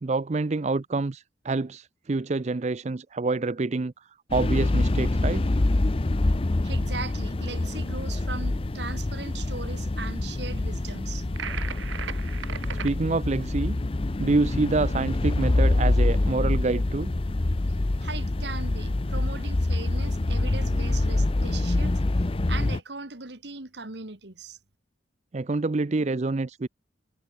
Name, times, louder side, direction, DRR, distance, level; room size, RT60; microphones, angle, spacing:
voice 1, 0.0-3.9 4.3-5.5 12.8-13.8 14.2-17.1 25.3-26.7, right 3 dB, 35° right, 0.5 m, -27 dB
sound 1, 4.3-22.8, left 2 dB, 30° left, 0.6 m, -26 dB
voice 2, 6.6-11.3 18.0-22.0 22.5-24.6, right 3 dB, 60° right, 2.1 m, -38 dB
sound 2, 11.4-12.9, right 8 dB, 85° right, 0.8 m, -36 dB
head